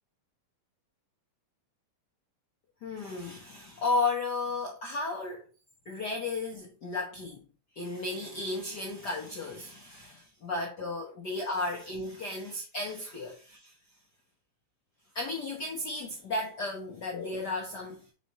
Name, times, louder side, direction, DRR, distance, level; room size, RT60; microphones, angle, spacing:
voice 1, 2.8-5.4 5.8-7.5 7.7-13.7 15.1-18.1, left 3 dB, 75° left, 0.9 m, -34 dB
7.7 x 4.2 x 3.0 m
omnidirectional pair, 3.7 m